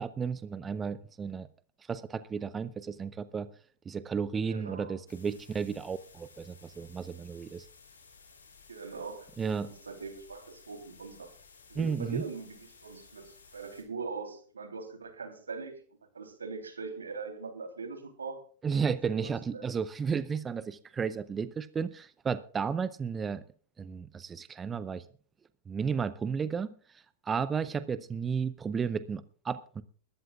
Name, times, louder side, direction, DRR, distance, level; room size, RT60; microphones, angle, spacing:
voice 1, 0.0-1.5 1.9-3.5 3.9-7.7 9.4-9.7 11.7-12.2 18.6-23.4 23.8-25.0 25.7-26.7 26.9-29.8, right 6 dB, 20° right, 15 dB, 0.7 m, -33 dB
voice 2, 4.4-4.9 8.7-9.3 9.6-11.3 11.7-15.8 16.1-18.5 19.1-19.7, right 4 dB, 85° right, 6 dB, 3.3 m, -41 dB
sound 1, 5.1-13.8, left 5 dB, 80° left, 4.3 m, -57 dB
21.5 x 13.5 x 2.4 m, 0.44 s
hypercardioid pair, 100°, 0 cm